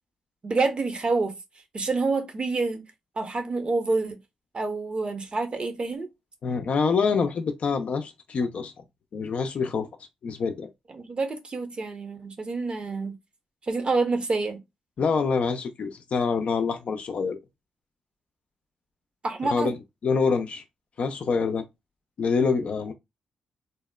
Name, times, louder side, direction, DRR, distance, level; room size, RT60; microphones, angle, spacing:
voice 1, 0.4-1.3 1.7-2.8 3.2-4.2 4.5-6.1 10.9-13.1 13.7-14.6 19.2-19.8, right 3 dB, 45° right, 0.7 m, -27 dB
voice 2, 6.4-8.7 9.1-9.9 10.2-10.7 15.0-17.4 19.5-19.8 20.0-20.6 21.0-21.6 22.2-22.9, left 5 dB, 65° left, 0.4 m, -26 dB
2.8 x 2.0 x 2.2 m
supercardioid pair, 45°, 2 cm